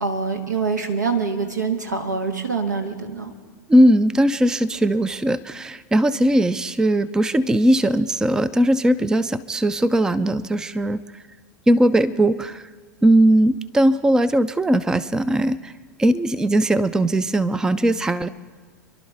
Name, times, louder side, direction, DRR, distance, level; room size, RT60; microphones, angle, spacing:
voice 1, 0.0-3.3, right 4 dB, 80° right, 5 dB, 1.5 m, -25 dB
voice 2, 3.7-11.0 11.7-12.6 13.0-15.7 16.0-18.3, right 1 dB, 5° right, 17 dB, 0.4 m, -19 dB
29.0 x 12.0 x 3.4 m, 1.5 s
figure-of-eight pair, 85°, 10 cm